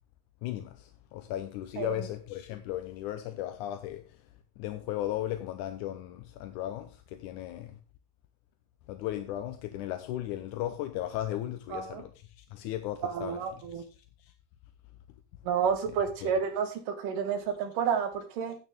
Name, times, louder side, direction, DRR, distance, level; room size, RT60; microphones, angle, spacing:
voice 1, 0.4-4.3 4.6-7.8 8.9-13.4 13.7-14.3 16.2-16.3, left 13 dB, 80° left, 2.1 m, -36 dB
voice 2, 1.8-2.1 11.7-12.0 13.0-13.8 15.4-18.6, right 7 dB, 80° right, 3.2 m, -30 dB
11.0 x 9.2 x 3.6 m
omnidirectional pair, 3.8 m